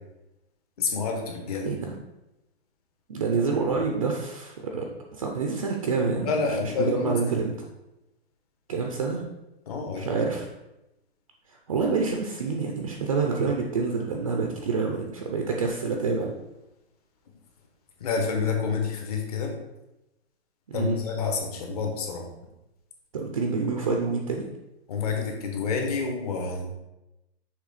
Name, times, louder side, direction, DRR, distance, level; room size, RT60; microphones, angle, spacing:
voice 1, 0.8-1.7 6.2-7.4 9.7-10.1 18.0-19.5 20.7-22.3 24.9-26.7, left 5 dB, 35° left, 2 dB, 1.0 m, -28 dB
voice 2, 1.6-1.9 3.1-4.9 5.1-6.3 6.6-7.5 8.7-9.2 10.0-10.5 11.5-16.3 20.7-21.0 23.1-24.5, right 4 dB, 35° right, 2 dB, 0.5 m, -27 dB
6.5 x 3.1 x 4.8 m, 0.95 s
hypercardioid pair, 175°, 32 cm